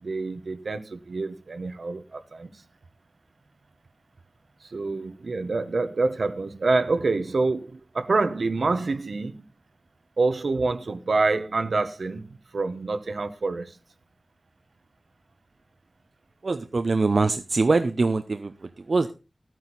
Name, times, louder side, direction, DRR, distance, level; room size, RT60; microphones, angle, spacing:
voice 1, 0.0-2.6 4.6-9.4 10.2-13.8, right 3 dB, 90° right, 1.0 m, -27 dB
voice 2, 16.4-19.1, right 3 dB, 70° right, 0.6 m, -23 dB
12.0 x 9.2 x 4.0 m
wide cardioid pair, 80°, 0 cm